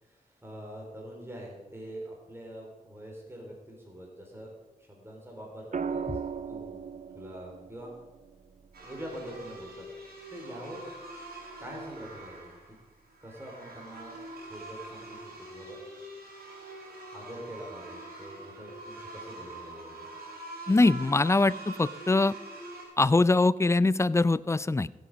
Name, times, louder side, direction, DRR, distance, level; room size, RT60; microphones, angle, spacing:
voice 1, 0.0-4.5 4.8-6.8 7.1-7.9 8.8-10.8 11.6-12.5 13.2-14.2 14.5-15.8 17.1-20.1, equal, 15° right, -1 dB, 3.8 m, -44 dB
sound 1, 5.7-9.9 11.6-11.9, right 6 dB, 55° right, 0.7 m, -38 dB
sound 2, 8.7-22.8, right 2 dB, 85° right, 3.9 m, -44 dB
voice 2, 20.7-22.3 23.0-24.9, left 2 dB, 20° left, 19 dB, 0.4 m, -23 dB
16.0 x 8.0 x 5.2 m, 1.1 s
cardioid pair, 55°, 15 cm